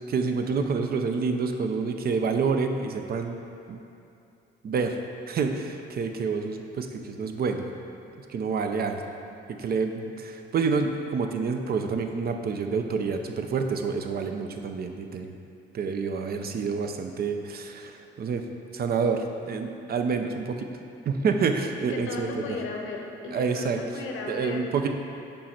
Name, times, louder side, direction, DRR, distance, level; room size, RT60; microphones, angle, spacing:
voice 1, 0.1-3.4 3.7-3.8 4.6-5.0 5.3-7.6 8.3-9.0 9.5-15.4 15.7-18.4 18.7-20.7 21.1-22.6 23.3-23.8 24.3-24.9, right 5 dB, 50° right, 5 dB, 0.6 m, -28 dB
voice 2, 21.8-24.7, left 3 dB, 80° left, 1 dB, 0.9 m, -35 dB
5.4 x 4.3 x 5.7 m, 2.7 s
cardioid pair, 90°, 20 cm